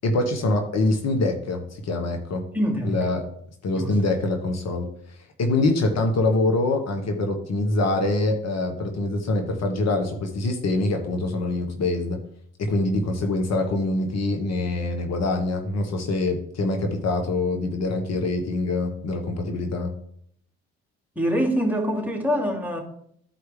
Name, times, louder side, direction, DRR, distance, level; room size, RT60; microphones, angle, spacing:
voice 1, 0.0-2.4 2.8-3.2 3.6-12.2 12.6-19.9, left 2 dB, 50° left, 1.3 m, -24 dB
voice 2, 2.5-3.0 3.7-4.0 21.2-22.8, equal, 5° right, 2.2 m, -24 dB
13.0 x 4.7 x 3.3 m
hypercardioid pair, 60°, 33 cm